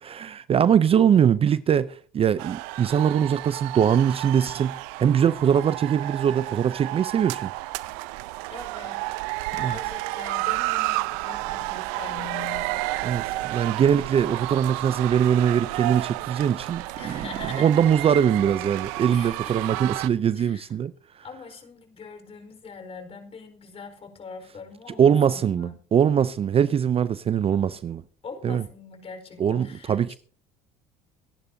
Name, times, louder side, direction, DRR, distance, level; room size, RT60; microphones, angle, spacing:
voice 1, 0.0-7.5 9.6-9.8 13.0-20.9 25.0-28.0 28.4-28.6 29.4-30.1, right 8 dB, 35° right, 0.5 m, -22 dB
sound 1, 2.4-20.1, right 20 dB, 80° right, 0.6 m, -31 dB
voice 2, 8.5-9.0 9.5-12.8 17.0-17.7 19.1-19.7 20.4-20.7 21.2-25.8 28.2-30.2, left 5 dB, 35° left, 4.4 m, -42 dB
24.5 x 11.0 x 2.7 m
supercardioid pair, 95°, 18 cm